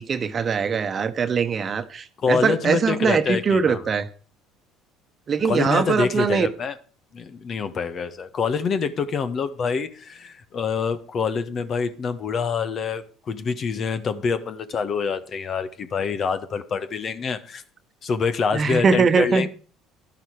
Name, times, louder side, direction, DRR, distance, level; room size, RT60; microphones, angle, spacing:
voice 1, 0.0-4.1 5.3-6.5 18.5-19.5, right 5 dB, 40° right, 1.2 m, -22 dB
voice 2, 2.2-3.8 5.4-6.7 7.1-17.6 18.0-19.5, left 5 dB, 45° left, 1.4 m, -26 dB
12.0 x 11.5 x 4.9 m
hypercardioid pair, 60°, 0 cm